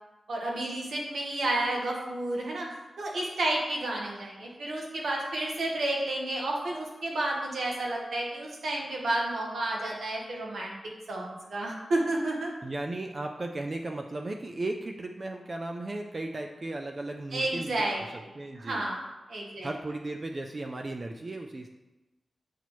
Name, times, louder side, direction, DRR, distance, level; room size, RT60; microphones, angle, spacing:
voice 1, 0.3-2.7 3.0-10.8 11.1-12.5 17.3-18.0 18.5-19.7, right 1 dB, 80° right, -1 dB, 1.3 m, -31 dB
voice 2, 12.6-17.9 18.4-18.8 19.6-21.7, right 2 dB, 30° right, 3 dB, 0.3 m, -35 dB
8.2 x 4.2 x 3.0 m, 1.1 s
wide cardioid pair, 175°, 0 cm